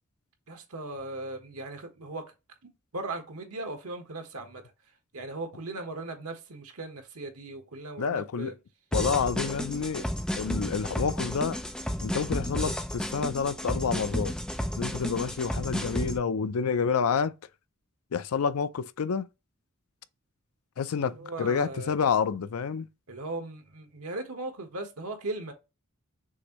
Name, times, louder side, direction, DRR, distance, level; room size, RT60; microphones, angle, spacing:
voice 1, 0.5-2.2 2.9-4.6 5.1-8.5 20.9-22.0 23.1-25.5, right 2 dB, 85° right, 1.3 m, -38 dB
voice 2, 8.0-8.5 8.9-10.1 10.4-11.6 12.0-14.3 14.8-17.3 18.1-19.3 20.8-22.9, left 6 dB, 80° left, 0.5 m, -28 dB
sound 1, 8.9-16.2, equal, 5° left, 0.5 m, -32 dB
6.3 x 2.6 x 3.0 m
head